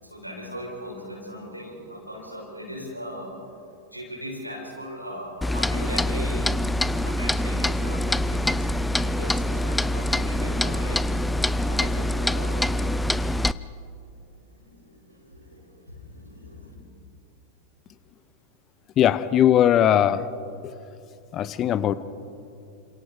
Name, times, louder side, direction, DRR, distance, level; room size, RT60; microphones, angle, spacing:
voice 1, 0.0-3.3 3.9-6.6 6.9-11.0 11.4-12.9 14.4-16.7, equal, 90° right, -1 dB, 6.8 m, -39 dB
Clock, 5.4-13.5, left 1 dB, 5° left, 0.6 m, -25 dB
voice 2, 19.0-20.3 20.6-20.7 21.3-22.0, left 10 dB, 30° left, 16 dB, 1.0 m, -19 dB
30.0 x 27.5 x 5.1 m, 2.7 s
figure-of-eight pair, 90°, 0 cm